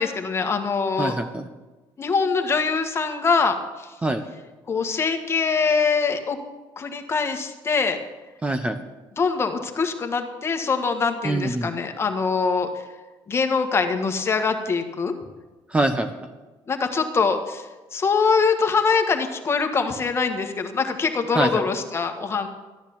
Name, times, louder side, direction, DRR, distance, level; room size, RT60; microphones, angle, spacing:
voice 1, 0.0-1.1 2.0-3.9 4.7-6.4 6.8-8.0 9.2-12.7 13.3-15.1 16.7-17.7 17.9-22.5, left 5 dB, 30° left, 5 dB, 1.6 m, -23 dB
voice 2, 1.0-1.5 4.0-4.2 8.4-8.8 11.2-11.7 15.7-16.1 21.3-21.5, right 2 dB, 15° right, 7 dB, 0.8 m, -24 dB
14.0 x 10.5 x 7.2 m, 1.2 s
cardioid pair, 130°, 9 cm